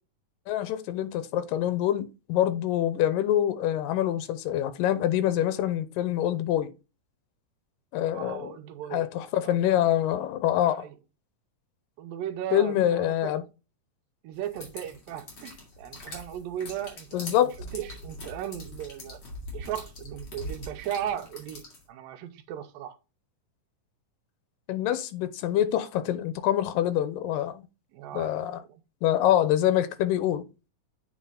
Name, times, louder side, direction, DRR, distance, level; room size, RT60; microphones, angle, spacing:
voice 1, 0.5-6.7 7.9-8.5 8.9-10.9 12.5-13.4 17.1-17.5 24.7-27.6 28.1-28.6 29.0-30.4, left 11 dB, 90° left, 2.4 m, -25 dB
voice 2, 8.1-9.1 9.4-9.6 10.6-11.0 12.0-13.3 14.2-19.2 19.5-21.6 21.9-23.0 27.9-28.8, right 10 dB, 90° right, 2.5 m, -37 dB
sound 1, 14.4-21.9, left 1 dB, 35° left, 3.1 m, -42 dB
8.3 x 4.2 x 3.8 m
omnidirectional pair, 4.0 m